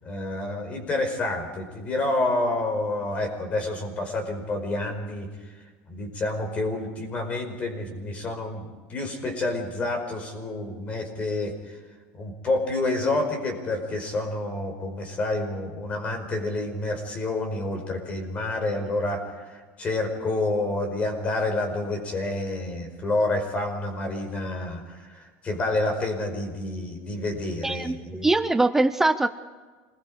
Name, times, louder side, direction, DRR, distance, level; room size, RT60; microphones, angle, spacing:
voice 1, 0.0-5.3 5.9-11.8 12.2-28.3, left 2 dB, 25° left, 5 dB, 4.9 m, -28 dB
voice 2, 27.6-27.9 28.2-29.3, right 2 dB, 5° right, 10 dB, 0.6 m, -22 dB
27.0 x 20.5 x 4.9 m, 1.4 s
cardioid pair, 155°, 5 cm